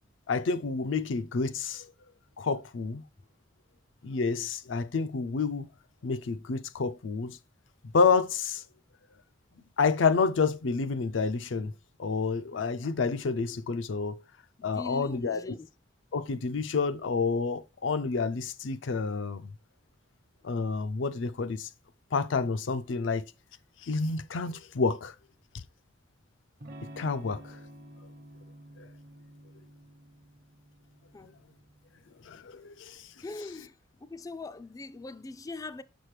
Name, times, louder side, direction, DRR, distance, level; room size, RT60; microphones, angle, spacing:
voice 1, 0.3-1.9 2.4-3.0 4.0-5.7 6.0-7.4 7.9-8.6 9.8-11.7 12.0-14.2 14.6-15.6 16.1-19.5 20.4-21.7 22.1-23.3 23.8-25.1 27.0-27.6 28.8-28.9 32.3-33.0, left 4 dB, 80° left, 0.5 m, -29 dB
voice 2, 14.6-15.7 31.1-31.3 33.2-33.7 34.0-35.8, left 3 dB, 20° left, 0.3 m, -41 dB
Electric guitar / Strum, 26.6-32.3, right 1 dB, 50° right, 0.9 m, -50 dB
6.5 x 6.1 x 3.2 m
head